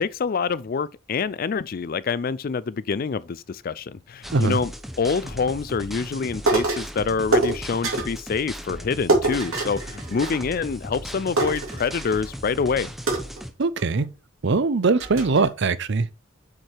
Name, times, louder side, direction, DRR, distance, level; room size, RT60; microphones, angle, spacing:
voice 1, 0.0-4.7 5.0-12.9, left 5 dB, 45° left, 0.4 m, -26 dB
sound 1, 4.2-13.5, equal, ahead, 0.7 m, -37 dB
sound 2, 6.5-6.9 7.3-8.2 9.1-10.7 11.0-11.1 11.4-12.4 13.1-14.0 14.5-14.6 15.0-15.5, right 2 dB, 80° right, 2.8 m, -25 dB
voice 2, 13.6-14.1 14.4-16.1, right 4 dB, 55° right, 0.6 m, -21 dB
7.4 x 4.8 x 4.6 m
head